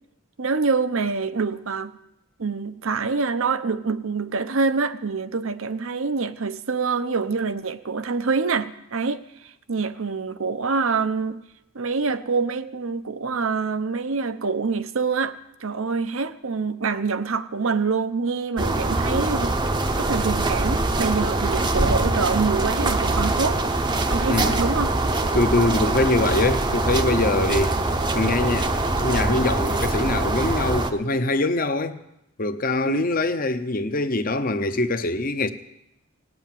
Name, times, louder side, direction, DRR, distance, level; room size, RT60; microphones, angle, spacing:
voice 1, 0.4-2.0 2.4-11.4 11.7-19.6 20.0-23.6 24.1-24.9 32.8-33.0, right 4 dB, 70° right, 0.8 m, -26 dB
sound 1, 18.6-30.9, right 2 dB, 20° right, 0.7 m, -23 dB
voice 2, 24.3-24.6 25.3-27.8 28.1-32.0 32.4-35.5, left 2 dB, 40° left, 0.8 m, -23 dB
18.5 x 7.9 x 9.1 m
head